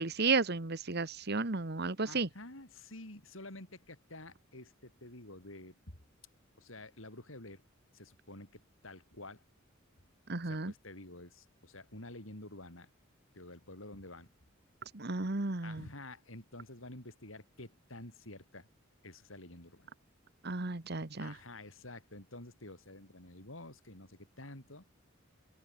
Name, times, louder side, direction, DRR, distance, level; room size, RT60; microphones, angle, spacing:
voice 1, 0.0-2.3 10.3-10.7 14.9-15.9 20.4-21.3, right 3 dB, 55° right, 1.5 m, -33 dB
voice 2, 2.0-6.0 6.6-7.6 7.9-9.4 10.4-12.9 13.3-14.3 15.6-18.7 19.0-19.9 21.2-24.8, left 2 dB, 75° left, 6.3 m, -50 dB
open air
head